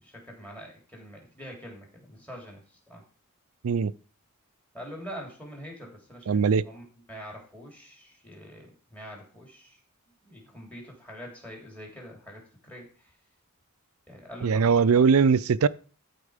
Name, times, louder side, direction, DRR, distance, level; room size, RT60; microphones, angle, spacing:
voice 1, 0.0-3.0 4.7-9.8 10.2-13.1 14.1-14.7 14.9-15.0, equal, 5° left, 3.0 m, -44 dB
voice 2, 6.3-6.7 14.4-15.7, right 5 dB, 75° right, 0.4 m, -21 dB
13.0 x 4.4 x 5.0 m
head